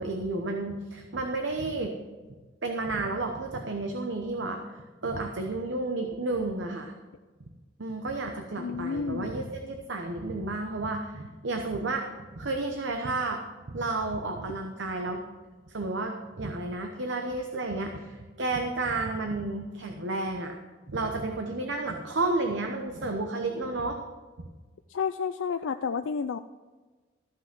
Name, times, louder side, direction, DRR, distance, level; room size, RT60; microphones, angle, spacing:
voice 1, 0.0-1.9 2.6-6.9 7.8-13.4 13.7-15.2 15.7-20.6 20.9-24.0, right 2 dB, 65° right, 4 dB, 0.9 m, -31 dB
voice 2, 8.6-9.3 24.9-26.4, left 6 dB, 80° left, 8 dB, 0.4 m, -30 dB
14.0 x 5.9 x 6.0 m, 1.3 s
head